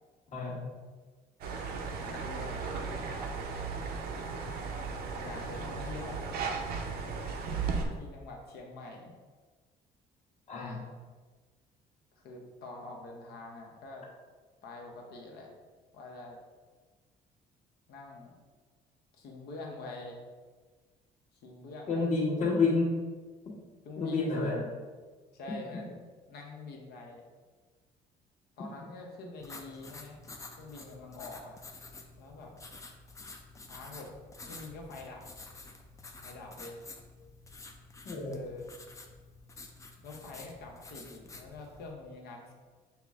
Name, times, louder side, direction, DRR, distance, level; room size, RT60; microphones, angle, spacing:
voice 1, 0.3-0.6 10.5-10.8 21.9-22.9 24.0-24.6 38.0-38.4, left 3 dB, 45° left, -4 dB, 1.3 m, -29 dB
sound 1, 1.4-7.9, right 5 dB, 65° right, 0.6 m, -36 dB
voice 2, 2.0-3.6 5.2-6.3 8.0-9.2 12.2-14.1 14.6-15.5 15.9-16.4 17.9-18.4 19.2-20.2 21.4-22.3 23.8-24.3 25.3-26.0 26.3-27.3 28.6-30.2 30.6-31.6 32.2-32.5 33.7-34.1 34.4-35.2 36.2-36.8 38.3-38.7 40.0-42.5, left 3 dB, 70° left, 0 dB, 0.9 m, -45 dB
sound 2, 29.4-41.9, left 3 dB, 20° left, 0.4 m, -50 dB
5.6 x 2.1 x 3.5 m, 1.4 s
cardioid pair, 110°, 17 cm